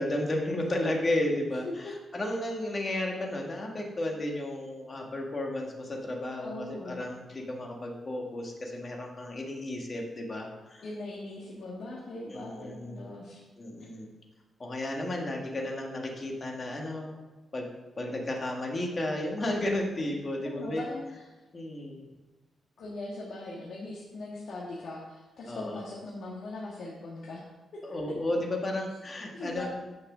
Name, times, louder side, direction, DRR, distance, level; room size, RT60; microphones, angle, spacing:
voice 1, 0.0-10.8 12.3-13.0 13.6-14.1 14.6-17.2 17.5-17.7 18.0-20.8 21.5-22.1 25.5-25.8 27.8-29.7, left 1 dB, 25° left, 1 dB, 1.7 m, -33 dB
voice 2, 6.4-7.1 10.8-13.4 13.8-13.9 20.5-21.3 22.8-27.4 29.3-29.7, left 2 dB, 60° left, -5 dB, 1.9 m, -40 dB
9.3 x 6.5 x 6.1 m, 1.2 s
wide cardioid pair, 160°, 0 cm